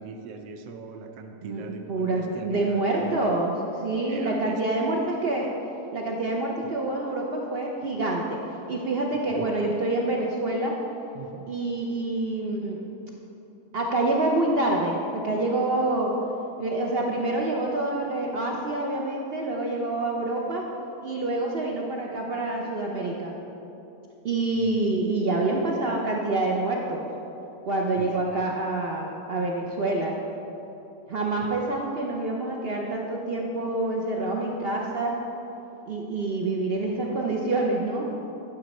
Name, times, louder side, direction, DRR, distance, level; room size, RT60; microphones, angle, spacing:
voice 1, 0.0-3.4 4.1-4.6 9.3-9.5 11.1-11.6 24.6-24.7 28.0-28.4, right 4 dB, 85° right, 5 dB, 1.3 m, -41 dB
voice 2, 1.9-3.5 3.8-5.5 5.9-8.4 8.7-10.7 11.5-12.8 13.7-16.1 16.6-20.7 21.0-23.3 24.2-27.0 27.6-30.2 31.1-35.2 35.9-38.1, right 2 dB, 70° right, -1 dB, 0.5 m, -27 dB
9.3 x 6.6 x 4.1 m, 3.0 s
omnidirectional pair, 1.9 m